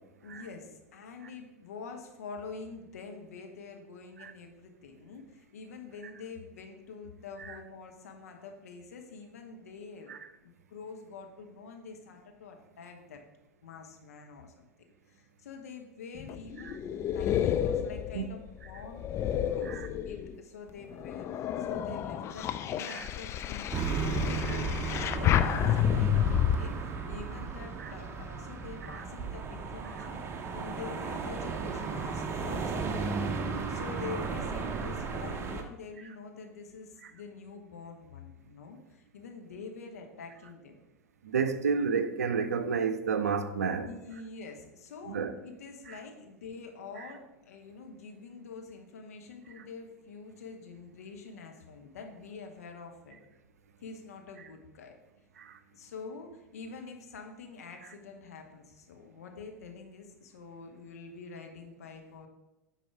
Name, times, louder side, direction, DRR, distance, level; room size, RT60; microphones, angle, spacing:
voice 1, 0.2-10.1 10.4-13.2 13.6-14.6 15.1-16.9 17.1-18.4 18.6-19.1 19.4-32.9 33.7-40.8 43.8-53.2 53.8-54.9 55.7-62.3, left 4 dB, 70° left, 1.2 m, -46 dB
sound 1, 16.1-20.4 20.9-26.6, left 10 dB, 30° left, 0.4 m, -30 dB
sound 2, 23.7-35.6, right 5 dB, 30° right, 0.9 m, -35 dB
voice 2, 41.2-43.9 45.0-45.3 45.9-46.0 47.0-47.1 55.4-55.6, right 5 dB, 75° right, 0.6 m, -31 dB
9.3 x 4.1 x 4.8 m
figure-of-eight pair, 85°, 9 cm